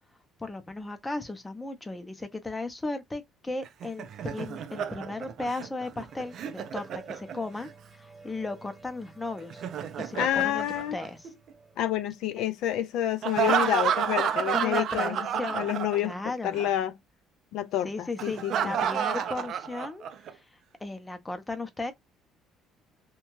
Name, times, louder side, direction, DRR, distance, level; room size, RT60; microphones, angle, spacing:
voice 1, 0.4-9.6 10.0-11.3 12.4-12.5 14.5-15.7 16.0-16.6 17.8-21.9, left 2 dB, 10° left, 0.6 m, -36 dB
Laughter, 3.6-7.7 9.4-11.5 13.2-16.3 16.5-16.7 18.2-20.3, right 8 dB, 55° right, 0.4 m, -30 dB
sound 1, 6.1-13.4, right 3 dB, 5° right, 0.9 m, -52 dB
voice 2, 10.1-11.0 11.8-15.2 15.5-16.2 16.4-16.9 17.5-18.7, left 12 dB, 75° left, 0.3 m, -28 dB
2.7 x 2.2 x 3.0 m
cardioid pair, 140°, 0 cm